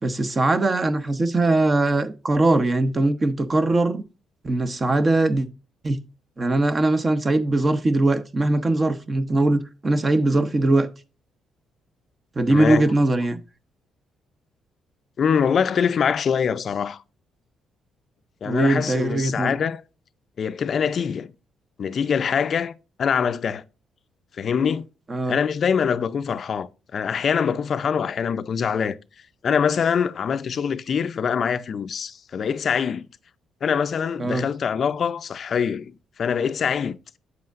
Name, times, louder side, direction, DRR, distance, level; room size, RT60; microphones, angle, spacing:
voice 1, 0.0-4.0 4.4-5.5 5.8-6.0 6.4-10.9 12.4-13.4 18.4-19.6 25.1-25.4 34.2-34.5, right 2 dB, 30° right, 0.9 m, -21 dB
voice 2, 12.5-12.9 15.2-17.0 18.4-19.8 20.4-21.3 21.8-22.7 23.0-23.6 24.4-24.9 25.3-29.0 29.4-33.1 33.6-37.0, left 7 dB, 50° left, 0.5 m, -24 dB
8.2 x 7.8 x 2.5 m
cardioid pair, 90°, 0 cm